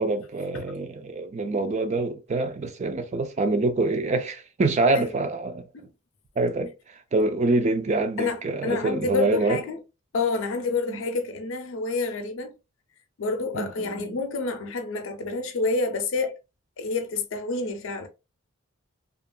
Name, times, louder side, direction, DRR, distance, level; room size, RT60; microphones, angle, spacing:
voice 1, 0.0-5.7 6.4-9.6 10.9-11.0 13.5-14.2, right 2 dB, 30° right, 0.4 m, -26 dB
voice 2, 8.2-9.8 10.1-12.5 13.2-16.4 16.8-18.1, left 3 dB, 65° left, 0.5 m, -28 dB
2.8 x 2.4 x 2.2 m
head